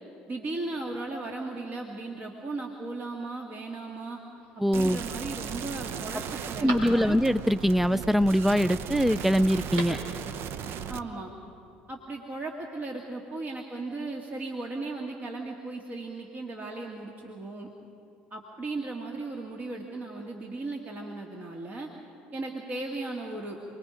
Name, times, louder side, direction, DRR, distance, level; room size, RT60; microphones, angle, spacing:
voice 1, 0.3-4.2 4.6-7.2 10.9-11.3 11.9-17.7 18.3-21.9 22.3-23.6, right 2 dB, 35° right, 1 dB, 2.2 m, -36 dB
Telephone, 4.3-4.9 5.5-5.6 5.9-7.5 9.5-10.1 10.4-10.5, right 2 dB, 65° right, 4.3 m, -40 dB
voice 2, 4.6-5.0 6.6-10.0, equal, 5° right, 16 dB, 0.5 m, -23 dB
sound 1, 4.7-11.0, right 7 dB, 50° right, 0.9 m, -37 dB
28.0 x 21.0 x 5.2 m, 2.6 s
figure-of-eight pair, 60°, 5 cm